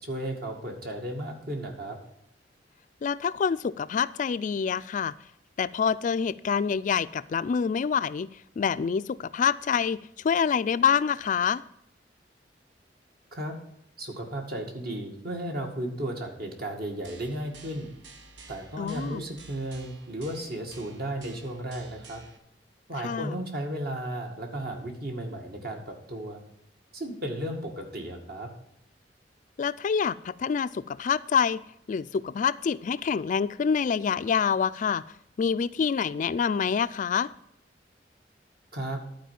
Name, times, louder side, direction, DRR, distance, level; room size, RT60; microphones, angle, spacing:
voice 1, 0.0-2.0 13.3-13.6 14.0-17.9 18.5-22.2 22.9-26.4 26.9-28.5 38.7-39.0, right 1 dB, 60° right, 2 dB, 2.1 m, -34 dB
voice 2, 3.0-5.1 5.6-8.3 8.6-11.6 18.8-19.3 23.0-23.4 29.6-31.6 31.9-35.0 35.4-37.3, left 6 dB, 45° left, 15 dB, 0.3 m, -26 dB
sound 1, 17.0-22.4, right 3 dB, 85° right, 1.2 m, -51 dB
11.5 x 4.5 x 7.4 m, 0.74 s
head